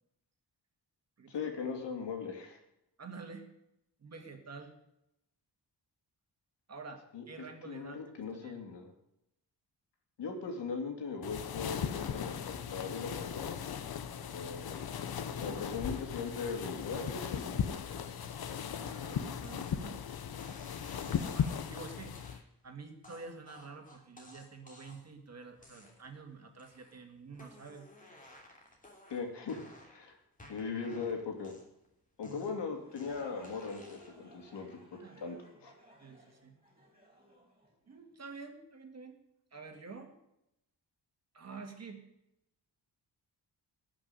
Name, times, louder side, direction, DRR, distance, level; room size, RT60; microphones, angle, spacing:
voice 1, 1.3-2.6 7.1-8.9 10.2-13.6 14.3-14.8 15.0-18.3 29.1-30.2 30.5-31.5 32.2-35.7, left 5 dB, 80° left, 3 dB, 3.0 m, -40 dB
voice 2, 3.0-3.5 4.0-4.7 6.7-8.6 15.6-15.8 18.8-20.0 21.0-22.2 22.6-27.9 28.3-28.4 32.2-32.6 35.0-35.2 36.0-36.6 37.9-39.2 39.5-40.1 41.3-42.0, right 4 dB, 40° right, 5 dB, 2.1 m, -48 dB
sound 1, 11.2-22.4, left 8 dB, 60° left, 1.0 m, -37 dB
sound 2, 19.4-19.8 20.4-21.7 22.1-22.4 23.0-25.2 25.6-26.2 26.6-27.0 27.3-30.1 30.4-31.9 32.2-34.3, left 1 dB, 20° left, 3.0 m, -56 dB
sound 3, 32.6-38.3, equal, 15° right, 4.5 m, -59 dB
18.0 x 6.1 x 9.2 m, 0.83 s
wide cardioid pair, 175°, 41 cm